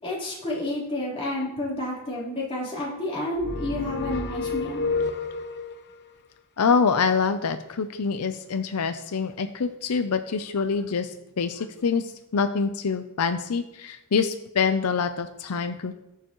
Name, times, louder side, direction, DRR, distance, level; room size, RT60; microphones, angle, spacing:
voice 1, 0.0-4.8, left 1 dB, 25° left, -7 dB, 3.8 m, -30 dB
sound 1, 3.4-5.8, left 4 dB, 50° left, 0.9 m, -30 dB
voice 2, 6.6-15.9, left 5 dB, 85° left, 9 dB, 0.6 m, -25 dB
20.0 x 6.9 x 3.1 m, 0.91 s
head